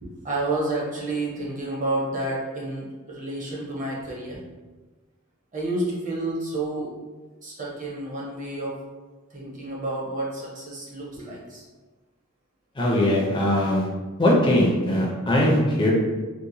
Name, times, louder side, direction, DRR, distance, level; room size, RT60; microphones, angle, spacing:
voice 1, 0.0-4.4 5.5-6.9 7.4-8.8 9.3-11.6, right 2 dB, 35° right, -4 dB, 0.7 m, -30 dB
voice 2, 12.8-13.9 14.2-15.9, left 1 dB, 25° left, -3 dB, 0.4 m, -20 dB
2.8 x 2.1 x 2.6 m, 1.3 s
head